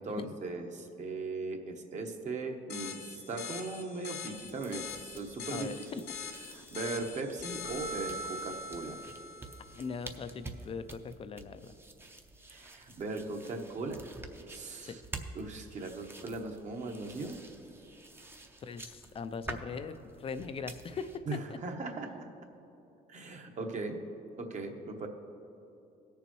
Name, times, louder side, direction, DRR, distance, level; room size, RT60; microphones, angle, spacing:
voice 1, 0.0-5.7 5.9-6.0 6.5-9.0 12.5-14.0 14.5-15.0 15.3-17.4 21.3-22.3 23.1-24.0 24.4-25.1, right 3 dB, 45° right, 4 dB, 1.1 m, -38 dB
sound 1, 2.7-9.9, left 8 dB, 65° left, 1.0 m, -44 dB
sound 2, 4.3-21.2, right 2 dB, 15° right, 0.7 m, -49 dB
voice 2, 5.5-6.0 9.8-11.7 14.8-15.0 18.6-21.1, left 5 dB, 35° left, 12 dB, 0.4 m, -40 dB
Keyboard (musical), 7.6-10.0, right 4 dB, 60° right, 1.9 m, -43 dB
18.0 x 6.9 x 3.1 m, 2.9 s
cardioid pair, 110°, 17 cm